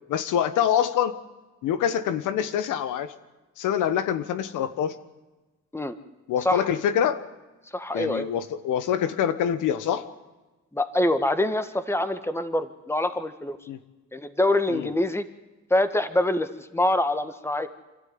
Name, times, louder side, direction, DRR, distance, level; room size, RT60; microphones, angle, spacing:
voice 1, 0.1-1.1 1.6-3.1 3.6-5.0 6.3-7.2 7.9-10.1 13.7-13.8 14.7-14.9, left 9 dB, 85° left, 12 dB, 1.3 m, -25 dB
voice 2, 7.7-8.3 10.7-13.6 14.1-15.2 15.7-17.7, left 1 dB, 10° left, 10 dB, 1.6 m, -25 dB
27.5 x 12.5 x 9.6 m, 1.1 s
cardioid pair, 90°, 30 cm